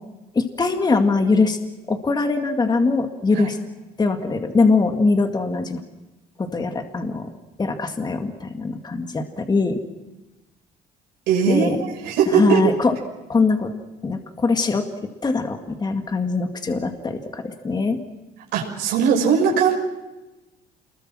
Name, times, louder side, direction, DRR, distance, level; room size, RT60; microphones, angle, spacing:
voice 1, 0.3-1.6 1.9-3.6 4.0-5.8 6.4-7.3 7.6-9.8 11.5-11.8 12.3-12.9 13.3-13.7 14.0-14.8 15.2-18.0, left 3 dB, 25° left, 6 dB, 2.2 m, -22 dB
voice 2, 11.3-12.6 18.5-19.7, right 6 dB, 90° right, -1 dB, 6.5 m, -19 dB
28.0 x 21.5 x 6.3 m, 1.1 s
cardioid pair, 110°, 17 cm